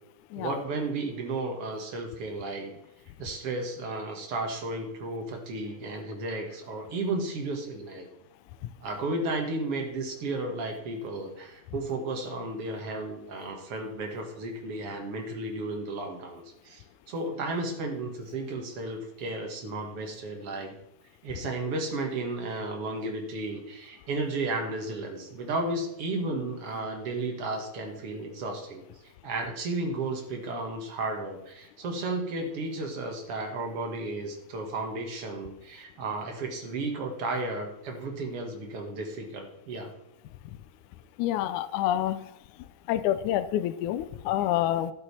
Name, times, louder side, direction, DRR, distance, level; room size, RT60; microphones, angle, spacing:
voice 1, 0.4-2.7 3.2-8.1 8.8-20.8 21.2-28.8 29.2-39.9, right 2 dB, 50° right, 2 dB, 2.2 m, -33 dB
voice 2, 41.2-42.2 42.9-44.9, left 12 dB, 85° left, 12 dB, 1.8 m, -27 dB
12.0 x 8.9 x 4.3 m, 0.84 s
omnidirectional pair, 4.0 m